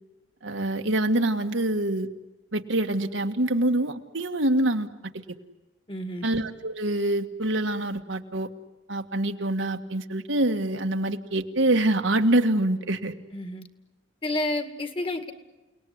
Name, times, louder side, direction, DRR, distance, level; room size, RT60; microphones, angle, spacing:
voice 1, 0.4-2.1 2.5-4.9 5.3-5.4 6.2-8.5 8.9-13.1, right 1 dB, 80° right, 6 dB, 1.8 m, -25 dB
voice 2, 5.9-6.3 13.3-13.7 14.2-15.3, left 1 dB, 30° left, 9 dB, 2.1 m, -30 dB
30.0 x 19.5 x 9.6 m, 1.1 s
head